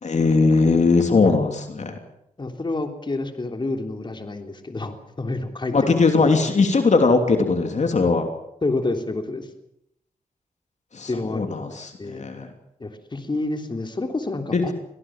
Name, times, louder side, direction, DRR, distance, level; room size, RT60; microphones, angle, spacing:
voice 1, 0.0-2.0 5.7-8.3 10.9-12.5 14.5-14.6, left 4 dB, 55° left, 5 dB, 3.0 m, -20 dB
voice 2, 2.4-6.4 8.6-9.5 11.1-12.2 12.8-14.7, left 2 dB, 35° left, 5 dB, 3.3 m, -29 dB
24.5 x 18.0 x 7.5 m, 0.78 s
cardioid pair, 70°, 14 cm